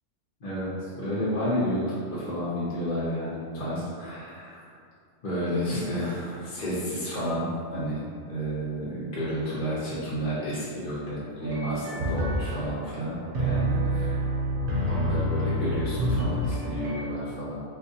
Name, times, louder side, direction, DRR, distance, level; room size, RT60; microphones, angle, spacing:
voice 1, 0.4-4.7 5.2-14.2 14.9-17.6, equal, 45° left, -9 dB, 0.8 m, -31 dB
sound 1, 11.4-17.1, right 1 dB, 60° right, 0.7 m, -28 dB
3.7 x 2.4 x 2.6 m, 2.2 s
omnidirectional pair, 1.2 m